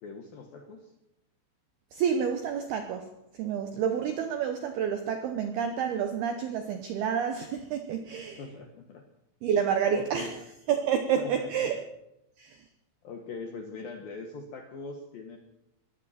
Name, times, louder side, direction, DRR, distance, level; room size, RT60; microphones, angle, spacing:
voice 1, 0.0-0.9 8.4-9.0 9.9-10.3 11.2-11.7 13.0-15.4, left 4 dB, 70° left, 4 dB, 2.2 m, -41 dB
voice 2, 1.9-8.4 9.4-10.4 10.7-11.8 12.4-12.7, right 7 dB, 80° right, 6 dB, 2.3 m, -29 dB
21.5 x 15.5 x 4.3 m, 0.88 s
omnidirectional pair, 6.0 m